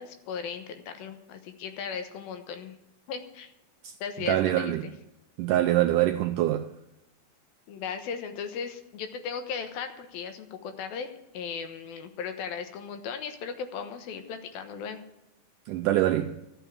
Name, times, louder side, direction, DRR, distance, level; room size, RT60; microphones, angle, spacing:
voice 1, 0.0-2.7 3.1-3.5 4.0-4.9 7.7-15.0, left 6 dB, 80° left, 2.9 m, -37 dB
voice 2, 4.2-4.9 5.4-6.7 15.7-16.4, right 14 dB, 85° right, 1.8 m, -25 dB
13.5 x 6.9 x 8.7 m
omnidirectional pair, 4.3 m